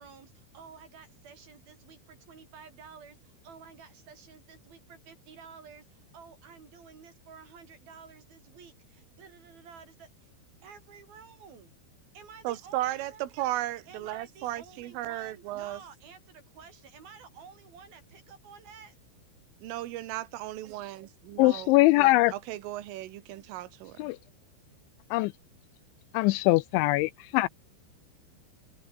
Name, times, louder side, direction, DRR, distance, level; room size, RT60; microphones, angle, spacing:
voice 1, 0.0-10.3 10.6-11.7 12.1-13.2 13.9-19.0, right 6 dB, 50° right, 5.9 m, -51 dB
voice 2, 12.5-15.8 19.6-21.7 22.0-24.0, right 15 dB, 90° right, 4.1 m, -35 dB
voice 3, 21.4-22.3 24.0-24.2 25.1-25.3 26.1-27.5, left 20 dB, 85° left, 2.8 m, -22 dB
omnidirectional pair, 5.6 m